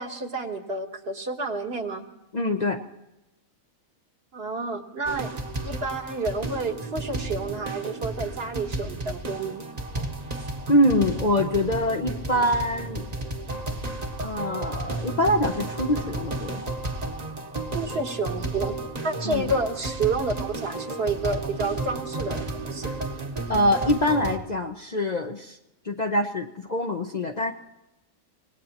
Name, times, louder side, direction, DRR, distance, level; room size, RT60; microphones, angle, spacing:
voice 1, 0.0-2.1 4.3-9.6 17.7-22.9, right 3 dB, 50° right, 4 dB, 1.4 m, -30 dB
voice 2, 2.3-2.8 10.7-13.0 14.2-16.6 19.2-19.5 23.5-25.6 25.8-27.5, left 1 dB, 40° left, 4 dB, 0.8 m, -24 dB
sound 1, 5.1-24.4, right 2 dB, 30° right, 1.2 m, -33 dB
25.5 x 18.5 x 2.9 m, 0.93 s
omnidirectional pair, 1.4 m